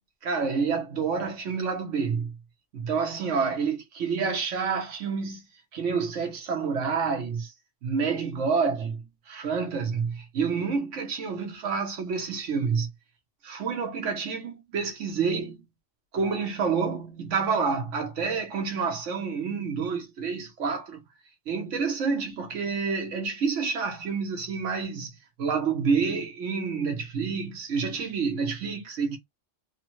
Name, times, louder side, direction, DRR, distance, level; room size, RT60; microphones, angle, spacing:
voice 1, 0.2-2.3 2.7-5.4 5.7-7.5 7.8-12.9 13.4-15.6 16.1-21.0 21.5-25.1 25.4-29.2, right 5 dB, 85° right, 1.2 m, -28 dB
3.4 x 2.1 x 3.0 m
omnidirectional pair, 1.2 m